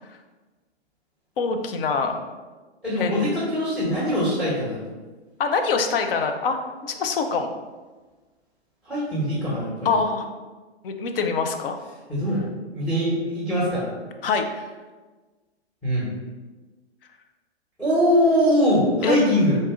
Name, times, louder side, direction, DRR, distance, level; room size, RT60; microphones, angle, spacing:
voice 1, 1.4-2.2 3.0-3.3 5.4-6.6 6.9-7.5 9.8-10.3 10.8-11.8 14.2-14.7 19.0-19.2, left 5 dB, 55° left, 6 dB, 0.6 m, -24 dB
voice 2, 2.8-4.8 8.8-10.0 12.1-12.4 12.7-13.9 15.8-16.1 17.8-19.6, equal, 5° left, -10 dB, 1.1 m, -22 dB
4.0 x 2.5 x 3.6 m, 1.3 s
hypercardioid pair, 130°, 33 cm